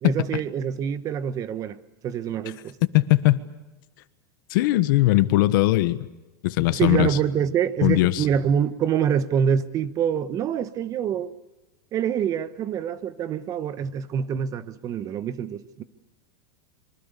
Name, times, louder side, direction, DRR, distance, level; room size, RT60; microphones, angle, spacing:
voice 1, 0.0-1.8 2.0-2.8 6.7-11.3 11.9-15.8, right 8 dB, 30° right, 1.2 m, -25 dB
voice 2, 2.9-3.4 4.5-6.1 6.4-7.2 7.8-8.2, left 18 dB, 60° left, 1.4 m, -19 dB
26.0 x 24.0 x 6.9 m
supercardioid pair, 150°, 12 cm